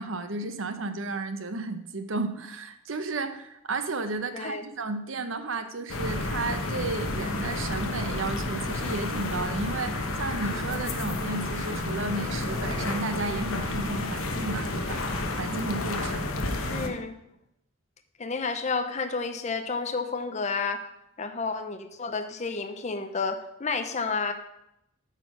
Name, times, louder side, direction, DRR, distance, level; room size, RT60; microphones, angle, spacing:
voice 1, 0.0-15.0 15.3-16.2, right 3 dB, 65° right, 9 dB, 0.8 m, -33 dB
voice 2, 4.3-4.7 16.7-17.2 18.2-20.8 21.2-24.3, left 4 dB, 35° left, 7 dB, 0.6 m, -30 dB
sound 1, 5.9-16.9, left 2 dB, 80° left, 1.0 m, -31 dB
8.9 x 4.5 x 6.1 m, 0.80 s
head